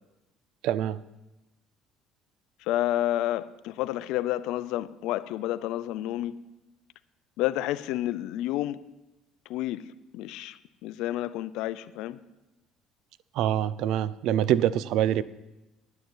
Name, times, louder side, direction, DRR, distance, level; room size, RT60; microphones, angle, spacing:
voice 1, 0.6-1.0 13.4-15.2, right 11 dB, 70° right, 0.5 m, -25 dB
voice 2, 2.6-6.4 7.4-8.9 9.5-12.2, left 14 dB, 75° left, 0.6 m, -30 dB
9.5 x 9.3 x 8.8 m
supercardioid pair, 100°, 0 cm